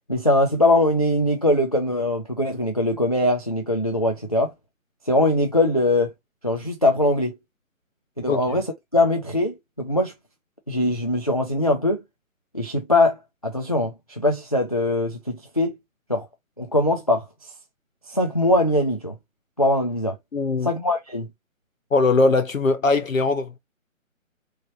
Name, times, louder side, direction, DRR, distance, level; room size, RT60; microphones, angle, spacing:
voice 1, 0.1-4.5 5.1-6.1 6.4-7.4 8.2-8.7 8.9-10.1 10.7-12.0 12.5-13.2 13.4-15.7 16.1-16.3 16.6-17.2 18.1-19.2 19.6-20.2 20.6-21.3, left 1 dB, 30° left, 0.4 m, -21 dB
voice 2, 20.3-20.7 21.9-23.6, left 3 dB, 75° left, 1.0 m, -20 dB
3.6 x 3.1 x 2.7 m
figure-of-eight pair, 150°, 40 cm